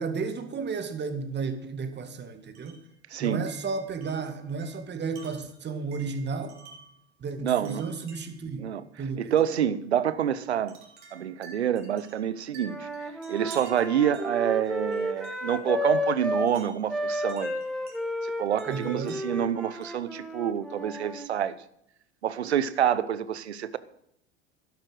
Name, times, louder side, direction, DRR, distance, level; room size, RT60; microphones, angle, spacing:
voice 1, 0.0-2.8 3.2-6.5 7.2-8.7 9.0-9.4 18.7-19.2, right 4 dB, 35° right, 2.1 m, -33 dB
Wind chime, 2.5-2.9 3.5-7.0 7.6-8.5 9.4-9.6 10.7-15.6 16.5-18.0 18.6-20.1, right 4 dB, 60° right, 3.9 m, -51 dB
voice 2, 3.1-3.4 7.4-7.8 8.6-8.8 9.2-10.7 11.1-12.9 13.3-17.6 18.2-21.5 22.2-23.8, right 9 dB, 90° right, 0.8 m, -27 dB
Wind instrument woodwind instrument, 12.6-16.5 16.9-21.3, left 1 dB, ahead, 2.1 m, -32 dB
11.5 x 11.0 x 6.3 m
hypercardioid pair, 75°, 32 cm